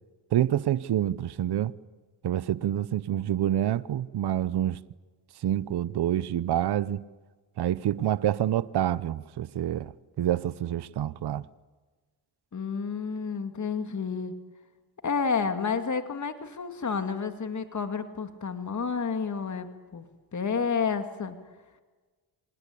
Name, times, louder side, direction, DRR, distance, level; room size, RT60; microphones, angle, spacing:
voice 1, 0.3-1.7 2.2-4.8 5.4-7.0 7.6-9.9 10.2-11.4, right 11 dB, 55° right, 0.9 m, -27 dB
voice 2, 12.5-14.3 15.0-20.0 20.3-21.4, left 5 dB, 35° left, 2.3 m, -30 dB
26.5 x 19.5 x 8.6 m
cardioid pair, 70°, 48 cm